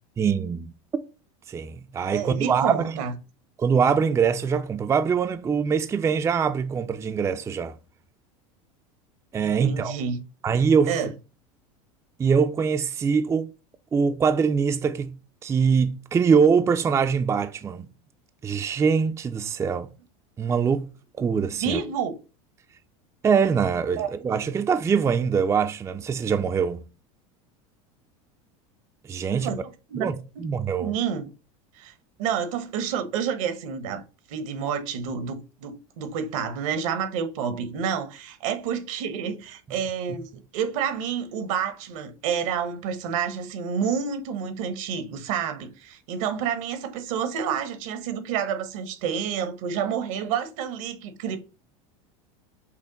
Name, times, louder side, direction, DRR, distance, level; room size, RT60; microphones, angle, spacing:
voice 1, 0.2-0.7 1.5-3.0 3.6-7.7 9.3-10.0 10.4-11.0 12.2-13.5 13.9-15.1 15.4-17.9 18.4-19.9 20.4-20.9 21.2-21.8 23.2-26.8 29.0-29.5 30.0-30.9, right 6 dB, 15° right, 0.4 m, -23 dB
voice 2, 2.1-3.1 9.4-10.2 10.9-11.1 21.6-22.2 24.0-24.1 29.3-30.1 30.8-31.3 31.8-31.9 32.2-34.0 34.3-51.4, right 7 dB, 70° right, 0.9 m, -29 dB
5.7 x 2.1 x 3.8 m
supercardioid pair, 100°, 17 cm